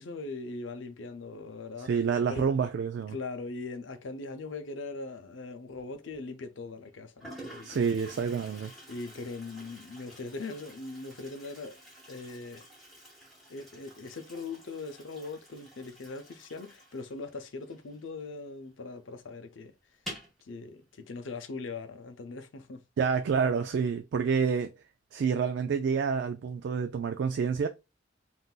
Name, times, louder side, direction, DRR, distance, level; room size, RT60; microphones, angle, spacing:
voice 1, 0.0-2.0 2.3-2.5 3.1-8.2 8.6-11.8 12.1-12.6 13.5-19.7 20.4-22.8, left 3 dB, 75° left, 0.6 m, -41 dB
voice 2, 1.8-3.2 7.6-8.7 23.0-24.7 25.1-27.7, right 6 dB, 60° right, 0.3 m, -28 dB
Toilet flush, 5.7-6.2 6.9-7.0 7.2-18.5 18.7-18.8 19.2-19.3 19.9-20.4, equal, ahead, 1.7 m, -49 dB
3.7 x 2.5 x 2.3 m
head